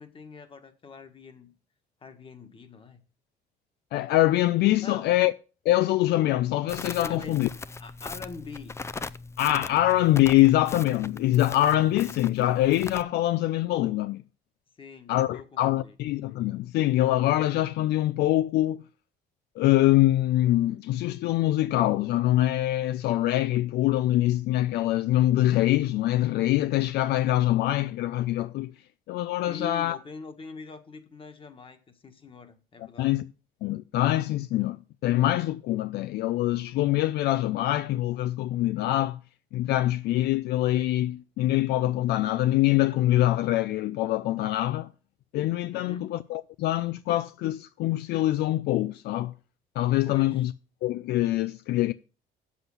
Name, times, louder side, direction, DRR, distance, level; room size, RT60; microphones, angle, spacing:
voice 1, 0.0-1.5 2.0-3.0 4.8-5.1 7.0-7.4 7.8-8.7 14.8-15.9 29.5-33.1 45.7-46.1 50.1-50.4, left 4 dB, 30° left, 1.6 m, -43 dB
voice 2, 3.9-5.3 5.7-7.5 9.4-14.2 15.1-18.8 19.6-28.7 29.1-30.0 33.0-33.3 33.6-39.2 39.5-44.9 45.3-49.3 49.8-50.5 50.8-51.9, left 15 dB, 75° left, 0.4 m, -24 dB
Crackle, 6.7-13.0, left 3 dB, 15° left, 0.4 m, -39 dB
8.0 x 7.3 x 5.6 m
cardioid pair, 110°, 17 cm